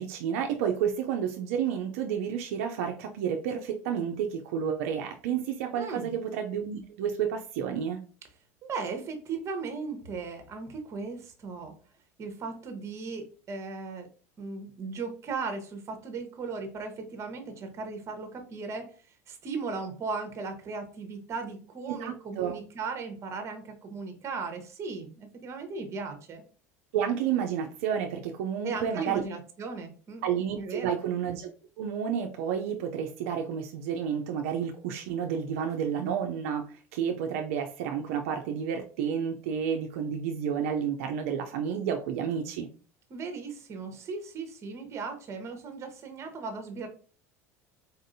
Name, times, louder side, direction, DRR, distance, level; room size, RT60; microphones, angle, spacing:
voice 1, 0.0-8.0 22.0-22.5 26.9-29.2 30.2-31.5 31.8-42.7, right 8 dB, 75° right, 4 dB, 0.4 m, -30 dB
voice 2, 5.8-6.1 8.6-11.7 12.2-14.1 14.4-18.9 19.3-26.4 28.6-30.2 30.6-30.9 43.1-46.9, right 4 dB, 40° right, 6 dB, 1.0 m, -37 dB
4.1 x 2.6 x 2.6 m, 0.39 s
hypercardioid pair, 90°, 8 cm